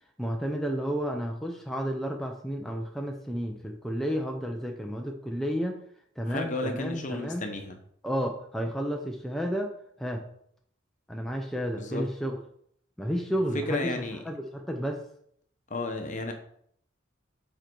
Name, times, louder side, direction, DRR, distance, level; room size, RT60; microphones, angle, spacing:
voice 1, 0.2-5.8 6.2-7.4 8.0-9.7 10.0-10.2 11.1-12.4 13.0-13.9 14.3-15.0, equal, ahead, 1 dB, 0.6 m, -31 dB
voice 2, 6.2-7.8 11.8-12.1 13.5-14.2 15.7-16.3, left 2 dB, 40° left, 5 dB, 1.0 m, -32 dB
7.6 x 4.5 x 4.6 m, 0.66 s
head